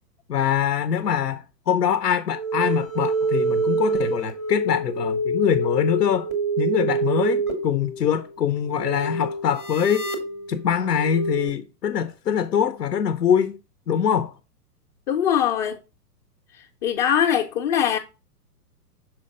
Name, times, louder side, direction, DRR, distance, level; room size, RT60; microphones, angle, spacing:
voice 1, 0.3-6.3 6.6-10.1 10.5-13.6 13.9-14.3, left 8 dB, 80° left, 0.7 m, -23 dB
sound 1, 2.3-11.5, right 2 dB, ahead, 0.3 m, -26 dB
voice 2, 15.1-15.8 16.8-18.0, left 9 dB, 35° left, 0.6 m, -21 dB
6.2 x 4.4 x 3.6 m
figure-of-eight pair, 115°, 49 cm